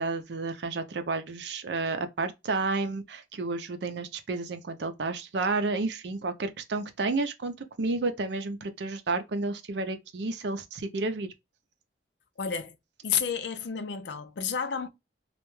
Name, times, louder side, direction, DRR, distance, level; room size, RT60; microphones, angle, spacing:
voice 1, 0.0-11.3, right 3 dB, 70° right, 0.5 m, -31 dB
voice 2, 12.4-12.8 13.0-14.9, left 7 dB, 75° left, 0.5 m, -30 dB
2.4 x 2.2 x 3.0 m
head